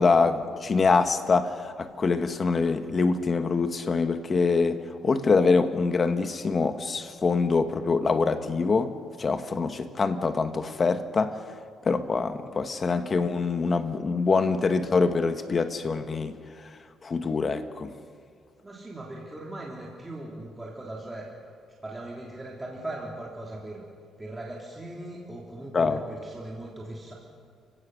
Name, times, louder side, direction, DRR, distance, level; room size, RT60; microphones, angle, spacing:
voice 1, 0.0-8.9 9.2-11.4 11.8-16.3 17.0-17.9 25.7-26.0, left 4 dB, 35° left, 9 dB, 1.4 m, -24 dB
voice 2, 18.6-21.3 21.8-23.8 24.2-27.1, right 1 dB, 15° right, -3 dB, 3.2 m, -39 dB
30.0 x 17.0 x 6.5 m, 2.2 s
cardioid pair, 100°, 0 cm